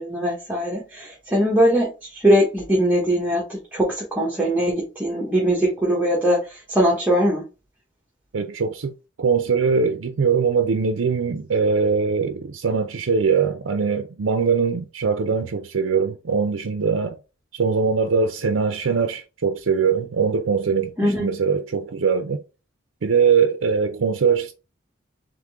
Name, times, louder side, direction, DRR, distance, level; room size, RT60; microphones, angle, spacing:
voice 1, 0.0-3.4 3.7-6.4 6.7-7.4 21.0-21.3, equal, 10° right, 1.0 m, -21 dB
voice 2, 8.3-8.9 9.2-17.2 17.5-22.4 23.0-24.5, right 5 dB, 75° right, 0.5 m, -21 dB
3.7 x 3.3 x 3.4 m
head